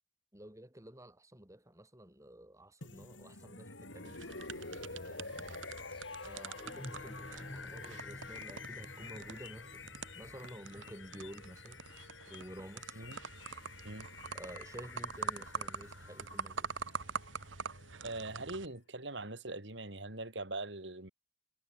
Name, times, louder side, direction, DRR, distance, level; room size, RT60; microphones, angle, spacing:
voice 1, 0.3-4.3 4.9-5.4 6.2-11.8 12.3-13.0 14.3-16.7, equal, 15° right, 4.4 m, -51 dB
sound 1, 2.8-18.7, left 4 dB, 80° left, 7.3 m, -49 dB
sound 2, 4.0-18.7, right 5 dB, 90° right, 1.5 m, -45 dB
sound 3, 4.5-14.5, left 1 dB, 30° left, 2.0 m, -54 dB
voice 2, 18.0-21.1, right 2 dB, 65° right, 3.5 m, -42 dB
head